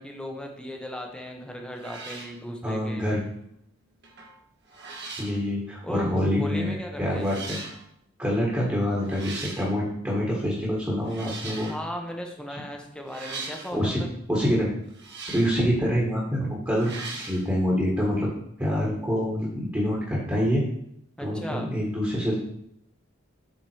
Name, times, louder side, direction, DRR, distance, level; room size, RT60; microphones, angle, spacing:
voice 1, 0.0-3.1 5.8-7.4 11.7-14.1 21.2-21.7, equal, 5° left, 2 dB, 0.9 m, -36 dB
sound 1, 1.2-1.4 1.7-2.4 4.0-4.4 4.7-5.4 6.4-6.5 7.2-7.8 9.0-9.7 11.0-11.8 13.1-13.8 14.9-15.6 16.7-17.4, right 3 dB, 55° right, 1.5 m, -39 dB
voice 2, 2.6-3.2 5.2-7.6 8.2-11.7 13.7-14.0 14.3-14.7 15.3-18.3 18.6-20.6 21.2-22.3, equal, 10° right, -5 dB, 1.5 m, -26 dB
7.6 x 3.9 x 4.6 m, 0.73 s
head